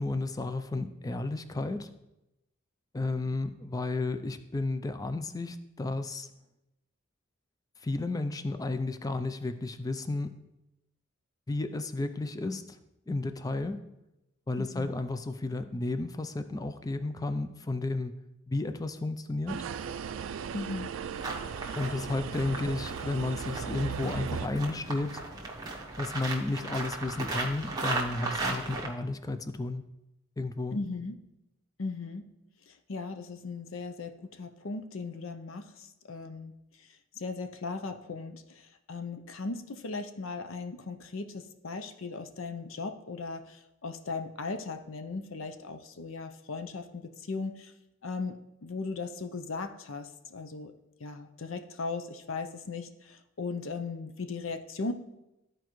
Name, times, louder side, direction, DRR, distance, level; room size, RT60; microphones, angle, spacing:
voice 1, 0.0-1.9 2.9-6.3 7.8-10.3 11.5-12.6 13.1-13.8 14.5-18.1 18.5-19.7 21.8-25.2 26.0-29.8 30.4-30.8, left 2 dB, 20° left, 10 dB, 0.4 m, -32 dB
voice 2, 14.6-14.9 20.5-20.9 30.7-31.2 31.8-32.3 32.9-36.5 37.2-38.4 38.9-47.7 48.0-50.7 51.0-54.9, left 3 dB, 80° left, 7 dB, 0.6 m, -37 dB
sound 1, 19.5-24.5, right 7 dB, 75° right, 0.3 m, -37 dB
sound 2, 21.1-28.9, right 2 dB, 20° right, 1.0 m, -36 dB
13.0 x 4.6 x 3.1 m, 0.91 s
head